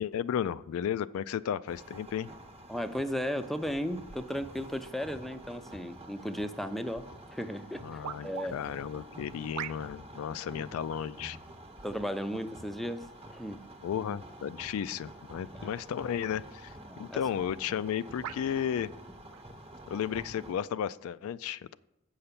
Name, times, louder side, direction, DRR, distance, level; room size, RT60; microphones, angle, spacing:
voice 1, 0.0-2.3 7.8-11.4 13.8-18.9 19.9-21.8, left 8 dB, 70° left, 15 dB, 0.3 m, -34 dB
sound 1, 1.7-20.5, right 1 dB, 25° right, 1.0 m, -49 dB
voice 2, 2.7-8.6 10.5-10.8 11.8-13.6 15.5-15.7 16.9-17.2, equal, ahead, 8 dB, 0.4 m, -35 dB
sound 2, 8.0-8.5 9.5-10.1 10.9-11.1 12.1-12.5 13.3-13.5 15.4-15.6 16.2-16.4 17.2-17.3 18.2-18.5 19.3-19.5, right 10 dB, 85° right, 0.3 m, -42 dB
7.8 x 5.7 x 6.7 m, 0.88 s
head